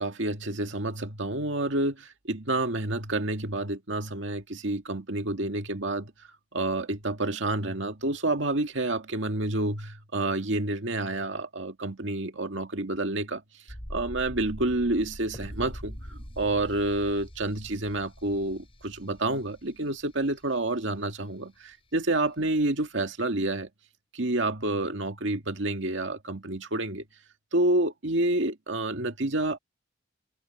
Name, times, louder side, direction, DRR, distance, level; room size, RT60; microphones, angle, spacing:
voice 1, 0.0-6.1 6.5-13.4 13.9-23.7 24.1-27.0 27.5-29.6, right 2 dB, 75° right, 2.1 m, -29 dB
sound 1, 13.7-20.5 20.8-20.9, equal, 30° left, 5.8 m, -43 dB
head